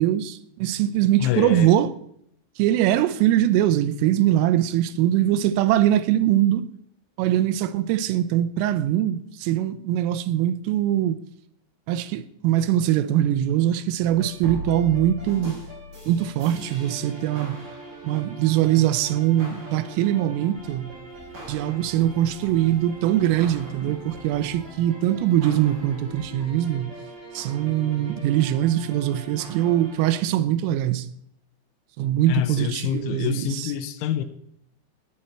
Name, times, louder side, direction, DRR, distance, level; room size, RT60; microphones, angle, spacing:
voice 1, 0.0-1.9 2.6-6.7 7.2-11.2 11.9-15.6 16.1-17.6 18.0-20.9 21.5-26.9 27.3-31.1 32.0-33.7, right 12 dB, 85° right, 3.2 m, -22 dB
voice 2, 1.2-1.7 32.3-34.3, left 11 dB, 80° left, 3.0 m, -26 dB
sound 1, 14.0-30.2, right 1 dB, 40° right, 7.7 m, -40 dB
sound 2, 20.5-26.6, right 1 dB, 15° right, 7.2 m, -52 dB
19.0 x 8.9 x 4.3 m
omnidirectional pair, 5.9 m